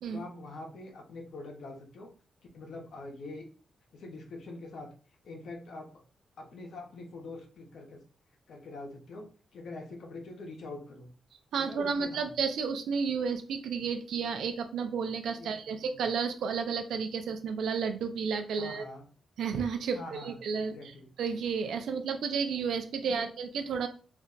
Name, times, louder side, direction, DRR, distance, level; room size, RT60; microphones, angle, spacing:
voice 1, 0.1-2.1 2.5-3.4 3.9-4.9 5.2-6.0 6.4-8.0 8.5-11.1 11.7-12.3 15.4-15.6 15.9-16.0 18.6-19.0 19.9-21.1 23.1-23.3, left 2 dB, 70° left, 2 dB, 0.8 m, -44 dB
voice 2, 11.5-18.8 19.4-20.8 21.2-23.9, right 6 dB, 85° right, 7 dB, 0.4 m, -32 dB
2.5 x 2.2 x 3.8 m, 0.38 s
wide cardioid pair, 135°, 0 cm